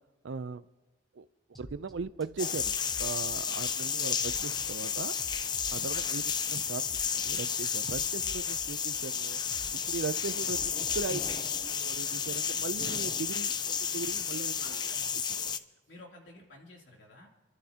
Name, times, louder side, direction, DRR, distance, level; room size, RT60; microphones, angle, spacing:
voice 1, 0.2-0.7 1.1-1.3 1.6-5.2 5.7-6.9 7.1-9.4 9.9-14.8, right 4 dB, 80° right, 15 dB, 0.5 m, -38 dB
sound 1, 1.5-12.2, equal, ahead, 0.8 m, -51 dB
sound 2, 2.4-15.6, left 7 dB, 25° left, 0.4 m, -32 dB
voice 2, 14.3-15.5 15.9-17.3, left 1 dB, 80° left, -1 dB, 3.0 m, -53 dB
29.5 x 12.0 x 2.9 m, 1.1 s
head